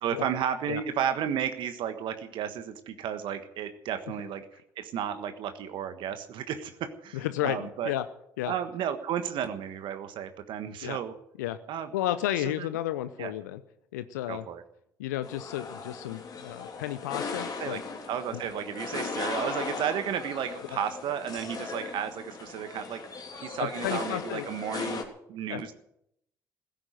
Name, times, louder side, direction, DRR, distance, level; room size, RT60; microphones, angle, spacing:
voice 1, 0.0-4.4 4.8-7.9 8.5-11.1 11.7-11.9 12.6-12.7 13.2-13.3 14.3-14.6 17.6-17.8 18.1-25.7, right 9 dB, 60° right, 9 dB, 1.4 m, -33 dB
voice 2, 7.1-8.1 8.4-8.5 10.8-11.0 11.4-11.6 11.9-13.6 13.9-14.4 15.0-17.8 18.3-18.4 23.6-24.5 25.5-25.6, left 13 dB, 80° left, 12 dB, 0.6 m, -32 dB
sound 1, 15.2-25.0, left 4 dB, 45° left, 3.2 m, -37 dB
16.5 x 8.9 x 9.0 m, 0.76 s
hypercardioid pair, 50°, 9 cm